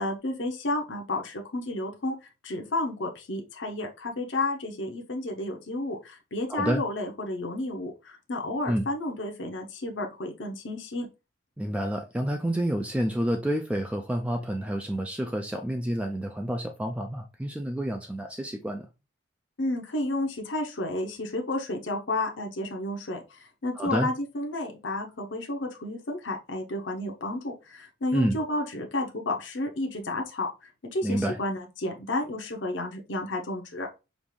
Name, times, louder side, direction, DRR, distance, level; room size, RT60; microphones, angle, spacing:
voice 1, 0.0-2.1 2.4-11.1 19.6-33.9, left 2 dB, 70° left, 0.8 m, -31 dB
voice 2, 6.5-6.8 8.7-8.9 11.6-18.9 23.8-24.1 28.1-28.4 31.0-31.4, equal, 5° right, 0.3 m, -29 dB
5.2 x 2.5 x 3.1 m
head